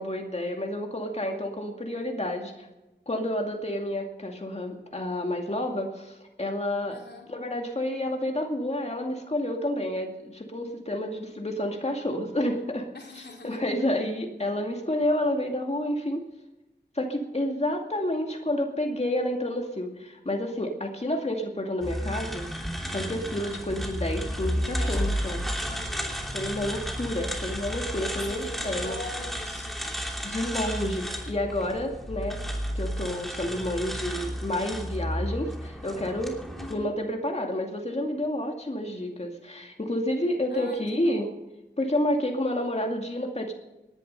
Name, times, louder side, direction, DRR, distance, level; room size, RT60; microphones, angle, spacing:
voice 1, 0.0-2.7 3.1-6.9 7.3-12.9 13.2-16.2 16.9-22.5 22.9-25.4 26.3-29.0 30.2-32.4 32.7-36.4 36.7-41.3 41.8-43.5, left 1 dB, 35° left, 2 dB, 2.4 m, -29 dB
voice 2, 6.9-7.3 12.9-13.6 24.7-25.4 25.6-26.2 28.0-30.0 36.6-37.0 40.5-41.3, left 2 dB, 65° left, 1 dB, 2.6 m, -42 dB
sound 1, 21.8-36.7, equal, ahead, 2.9 m, -32 dB
18.5 x 11.0 x 5.5 m, 0.98 s
cardioid pair, 45°, 19 cm